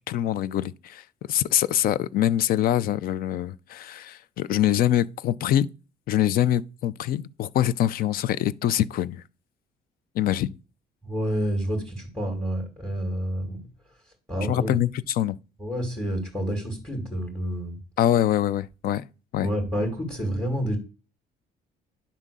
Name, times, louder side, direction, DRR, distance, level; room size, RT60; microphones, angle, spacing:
voice 1, 0.1-5.7 6.1-9.2 10.1-10.5 14.5-15.4 18.0-19.0 19.3-19.5, left 11 dB, 60° left, 0.5 m, -24 dB
voice 2, 11.0-13.6 14.3-14.8 15.6-17.8 19.4-20.8, equal, 5° left, 2.2 m, -29 dB
10.0 x 3.6 x 6.7 m
cardioid pair, 110°, 17 cm